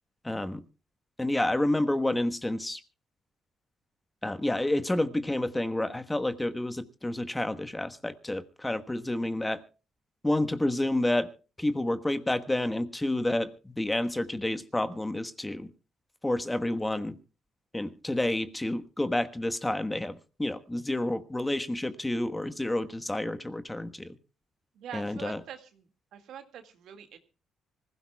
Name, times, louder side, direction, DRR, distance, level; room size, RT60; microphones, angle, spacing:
voice 1, 0.2-0.6 1.2-2.8 4.2-9.6 10.2-11.3 11.6-15.7 16.2-17.2 17.7-24.2 24.9-25.4, left 1 dB, 10° left, 9 dB, 1.3 m, -29 dB
voice 2, 24.8-25.9 26.1-27.2, right 9 dB, 75° right, 8 dB, 2.0 m, -44 dB
25.5 x 16.0 x 2.3 m, 0.34 s
cardioid pair, 90°, 0 cm